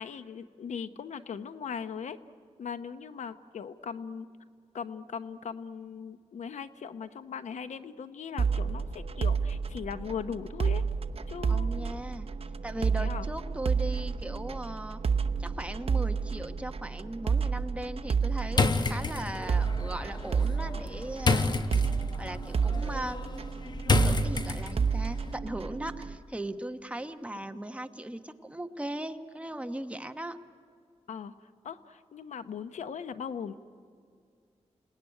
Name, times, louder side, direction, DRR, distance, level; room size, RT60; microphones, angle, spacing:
voice 1, 0.0-2.2 2.6-4.3 4.7-10.8 11.3-11.9 13.0-13.2 27.5-27.6 31.1-33.5, left 7 dB, 90° left, 11 dB, 0.9 m, -39 dB
sound 1, 8.4-26.1, right 5 dB, 55° right, 0.8 m, -30 dB
voice 2, 11.5-12.3 12.6-15.0 15.4-21.5 22.2-23.2 24.0-30.4, right 1 dB, 10° right, 7 dB, 1.1 m, -38 dB
sound 2, 18.5-25.0, left 3 dB, 40° left, 1.1 m, -30 dB
29.0 x 18.0 x 10.0 m, 2.2 s
wide cardioid pair, 105°, 12 cm